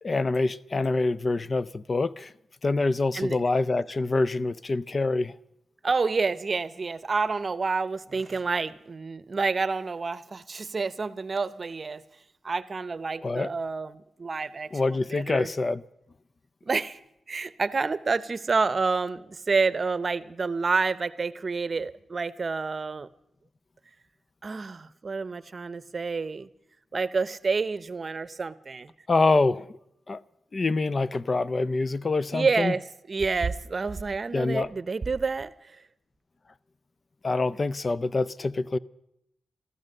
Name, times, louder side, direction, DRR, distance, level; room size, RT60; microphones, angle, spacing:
voice 1, 0.0-2.3 2.6-5.3 13.2-13.5 14.7-15.8 29.1-29.6 30.1-30.2 30.5-32.7 34.3-34.7 37.2-38.8, left 3 dB, 40° left, 0.5 m, -25 dB
voice 2, 5.8-12.0 12.4-15.5 16.7-17.0 17.3-23.1 24.4-26.5 26.9-28.9 32.3-32.8 33.1-35.8, right 4 dB, 45° right, 0.7 m, -28 dB
14.5 x 13.5 x 6.6 m
cardioid pair, 65°, 0 cm